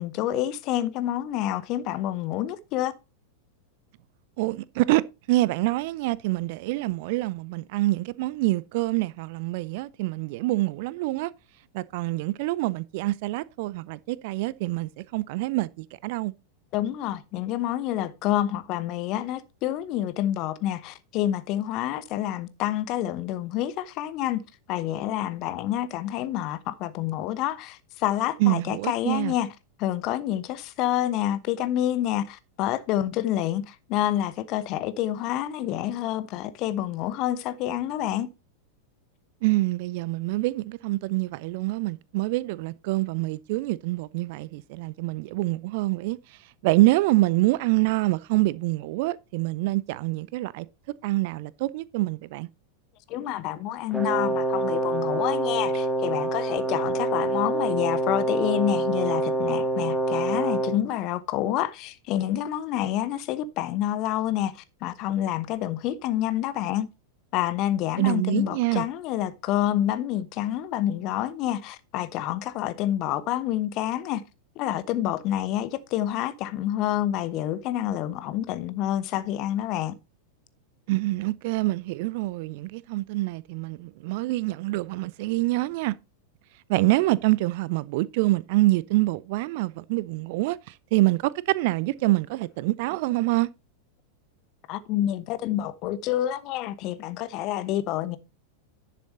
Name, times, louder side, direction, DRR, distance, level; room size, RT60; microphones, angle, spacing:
voice 1, 0.0-2.9 16.7-24.4 24.7-38.3 53.1-66.9 67.3-74.2 74.6-79.9 94.7-98.2, left 12 dB, 40° left, 0.9 m, -28 dB
voice 2, 4.4-5.0 5.3-11.3 11.7-16.3 28.4-29.3 39.4-46.2 46.6-50.7 51.0-52.5 68.0-68.9 80.9-85.9 86.7-90.6 90.9-93.5, right 19 dB, 50° right, 0.5 m, -26 dB
Brass instrument, 53.9-60.8, right 2 dB, ahead, 2.3 m, -26 dB
10.5 x 6.8 x 4.1 m
figure-of-eight pair, 90°, 0 cm